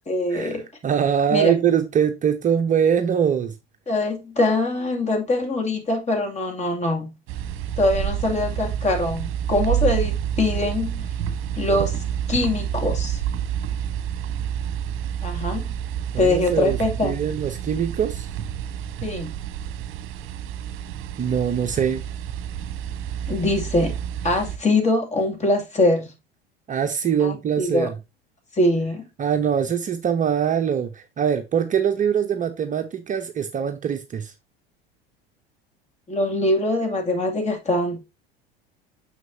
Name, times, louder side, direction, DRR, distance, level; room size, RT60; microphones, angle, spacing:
voice 1, 0.1-0.6 1.3-1.6 3.9-7.1 7.8-11.1 11.6-11.9 12.3-13.2 15.2-15.7 16.2-17.2 19.0-19.3 23.3-24.0 24.2-26.1 27.2-27.9 28.6-29.0 36.1-38.0, left 2 dB, 20° left, 2.4 m, -23 dB
voice 2, 0.8-3.5 16.1-18.3 21.2-22.0 26.7-27.9 29.2-34.3, right 8 dB, 25° right, 0.8 m, -23 dB
sound 1, 7.3-24.6, right 10 dB, 45° right, 1.2 m, -29 dB
9.2 x 6.5 x 2.7 m
figure-of-eight pair, 75°, 30 cm